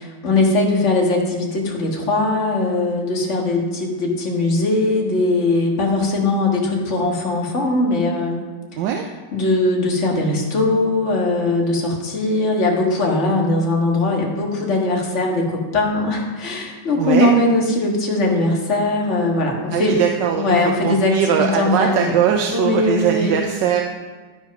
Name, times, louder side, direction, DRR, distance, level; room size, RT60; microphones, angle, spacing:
voice 1, 0.0-8.4 9.3-20.0 20.4-22.1 22.5-23.3, left 2 dB, 45° left, -1 dB, 1.8 m, -20 dB
voice 2, 8.8-9.1 17.0-17.3 19.7-23.8, right 9 dB, 90° right, 3 dB, 1.3 m, -20 dB
13.5 x 4.9 x 5.3 m, 1.4 s
omnidirectional pair, 1.9 m